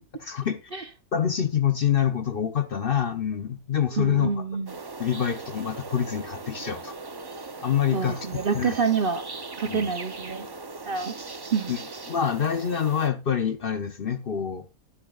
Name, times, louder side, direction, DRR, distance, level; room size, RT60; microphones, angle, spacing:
voice 1, 0.2-0.7 1.1-4.4 5.0-6.9 7.6-8.8 9.7-9.9 11.7-14.6, left 8 dB, 45° left, 0.8 m, -26 dB
voice 2, 4.0-4.7 7.9-9.2 9.6-10.5 10.9-11.1 11.5-11.7, right 6 dB, 50° right, 0.8 m, -27 dB
sound 1, 4.7-13.1, right 3 dB, 30° right, 0.4 m, -39 dB
20.5 x 7.1 x 2.4 m
omnidirectional pair, 1.5 m